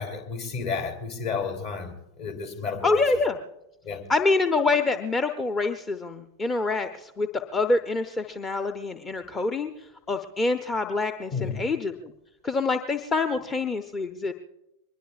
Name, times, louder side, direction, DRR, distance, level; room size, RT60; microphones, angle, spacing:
voice 1, 0.0-1.9 2.2-3.0 3.8-4.0 11.3-11.6, left 5 dB, 50° left, 3 dB, 3.3 m, -31 dB
voice 2, 2.8-3.4 4.1-12.1 12.4-14.3, left 3 dB, 20° left, 8 dB, 0.7 m, -26 dB
23.5 x 20.5 x 2.5 m, 0.89 s
figure-of-eight pair, 90°, 0 cm